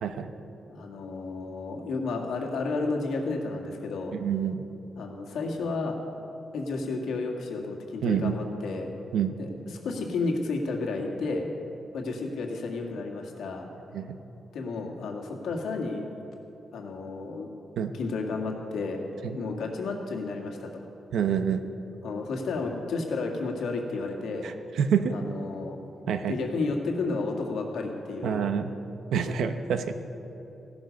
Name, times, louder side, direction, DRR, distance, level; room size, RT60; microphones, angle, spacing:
voice 1, 0.0-0.3 4.1-4.6 8.0-8.4 9.1-9.3 13.9-14.2 17.8-17.9 19.2-19.4 21.1-21.6 24.4-25.2 26.1-26.4 28.2-28.7 29.1-29.9, right 7 dB, 90° right, 8 dB, 0.9 m, -27 dB
voice 2, 0.7-4.2 5.0-6.0 6.5-8.9 9.4-9.5 9.8-11.4 11.9-13.7 14.5-16.1 16.7-17.5 17.9-19.0 19.3-20.8 22.0-24.5 25.1-25.8 26.3-28.4, left 3 dB, 90° left, 1 dB, 2.0 m, -32 dB
16.0 x 12.0 x 5.3 m, 2.9 s
wide cardioid pair, 175°, 0 cm